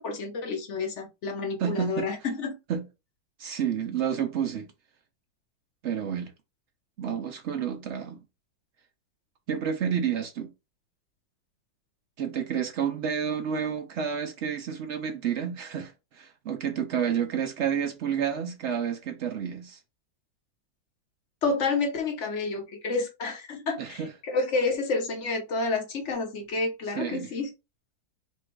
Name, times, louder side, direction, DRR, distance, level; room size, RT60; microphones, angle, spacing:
voice 1, 0.0-2.6 21.4-27.5, left 3 dB, 45° left, 1.1 m, -29 dB
voice 2, 1.6-2.1 2.7-2.8 3.4-4.7 5.8-6.3 7.0-8.2 9.5-10.5 12.2-19.8 23.8-24.1 27.0-27.3, right 8 dB, 75° right, 0.6 m, -30 dB
4.3 x 2.4 x 4.5 m
omnidirectional pair, 2.0 m